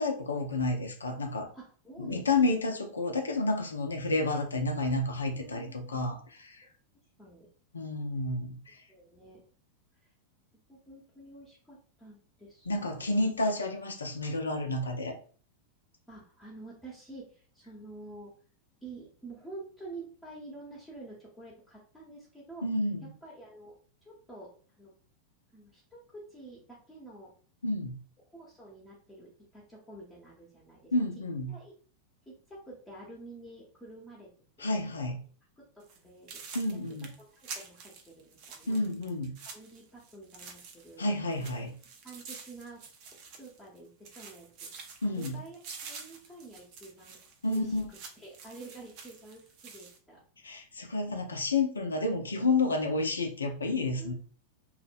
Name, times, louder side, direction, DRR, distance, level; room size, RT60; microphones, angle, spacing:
voice 1, 0.0-1.5 2.0-6.2 6.4-6.7 7.7-8.8 12.7-15.2 22.6-23.1 27.6-28.0 30.9-31.5 34.6-35.2 36.5-37.1 38.7-39.4 41.0-41.7 45.0-45.4 47.4-47.9 50.4-54.1, left 2 dB, 75° left, 5 dB, 0.4 m, -30 dB
voice 2, 1.5-2.6 5.2-6.1 7.2-7.5 8.9-9.4 10.0-10.1 10.7-13.2 16.1-18.3 18.8-22.6 23.2-23.7 24.0-24.5 24.8-24.9 25.5-27.3 28.3-30.9 31.5-31.7 32.3-34.3 34.6-34.7 35.6-39.1 39.5-41.0 41.4-41.5 42.0-47.2 47.5-50.2 54.0-54.1, right 2 dB, 10° left, -5 dB, 0.7 m, -49 dB
sound 1, 35.8-36.0 36.3-41.0 41.3-43.8 44.0-50.0, right 5 dB, 45° right, 0.5 m, -48 dB
2.5 x 2.1 x 2.5 m, 0.43 s
figure-of-eight pair, 90°, 0 cm